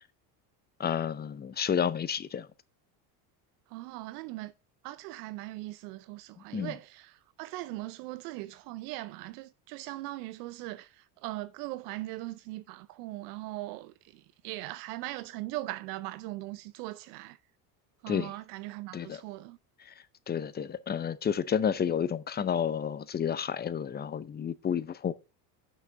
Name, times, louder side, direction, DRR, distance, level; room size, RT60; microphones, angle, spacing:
voice 1, 0.8-2.5 6.4-6.8 18.1-18.3 18.9-19.2 19.8-19.9 20.3-25.1, left 8 dB, 20° left, 0.5 m, -31 dB
voice 2, 3.7-4.5 4.8-7.1 7.4-17.4 18.0-19.6, right 18 dB, 75° right, 0.7 m, -40 dB
6.3 x 5.9 x 6.7 m
supercardioid pair, 100°, 47 cm